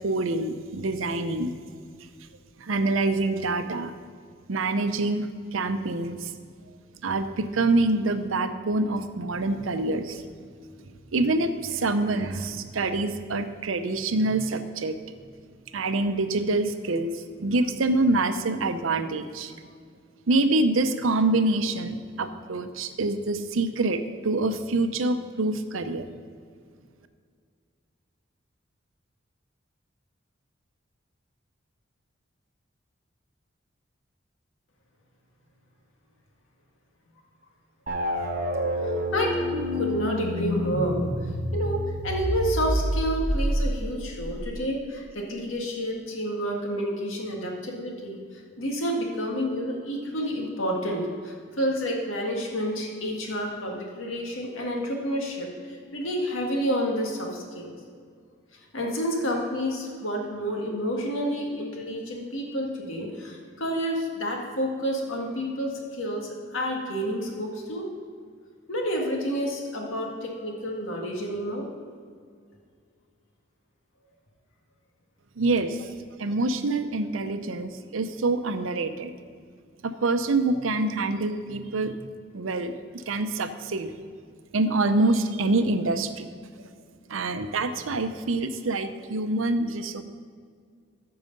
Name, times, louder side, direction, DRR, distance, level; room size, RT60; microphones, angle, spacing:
voice 1, 0.0-1.5 2.6-3.9 4.5-6.3 7.0-10.2 11.1-15.0 15.7-17.1 17.4-19.5 20.3-26.1 75.4-75.9 76.2-79.1 79.8-81.9 82.3-82.7 83.1-83.9 84.5-86.3 86.6-86.7 87.1-90.0, right 2 dB, 85° right, 9 dB, 0.6 m, -26 dB
sound 1, 37.9-44.5, equal, 40° right, 1.1 m, -28 dB
voice 2, 38.8-39.4 39.8-48.2 48.6-57.7 58.7-67.9 68.7-71.7, equal, 85° left, 0 dB, 1.8 m, -29 dB
14.0 x 4.8 x 5.3 m, 2.1 s
head